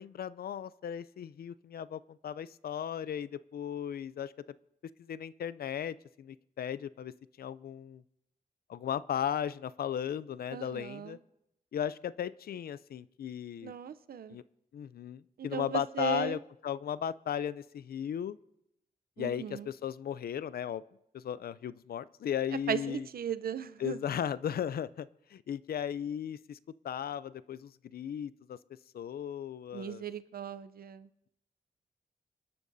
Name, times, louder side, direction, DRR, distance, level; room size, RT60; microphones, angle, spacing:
voice 1, 0.0-4.3 5.0-7.1 7.4-8.0 8.7-11.2 11.7-13.7 14.3-14.4 14.7-18.4 19.2-20.8 21.1-23.1 23.8-26.6 26.8-28.6 28.9-30.0, left 9 dB, 80° left, 17 dB, 0.4 m, -36 dB
voice 2, 10.5-11.2 13.6-14.4 15.4-16.4 19.2-19.7 22.7-24.0 29.7-31.1, right 7 dB, 75° right, 15 dB, 0.6 m, -37 dB
26.5 x 12.0 x 2.7 m, 0.82 s
wide cardioid pair, 115°, 16 cm